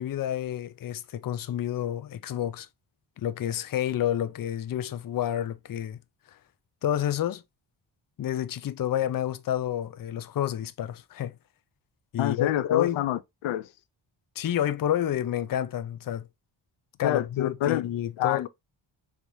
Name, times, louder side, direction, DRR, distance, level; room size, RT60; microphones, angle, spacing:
voice 1, 0.0-2.7 3.2-6.0 6.8-7.4 8.2-11.4 12.1-13.1 14.4-16.3 17.0-18.5, left 11 dB, 45° left, 0.6 m, -29 dB
voice 2, 12.2-13.7 17.0-17.9 18.2-18.5, left 12 dB, 90° left, 0.5 m, -27 dB
4.8 x 3.4 x 2.7 m
cardioid pair, 85°, 47 cm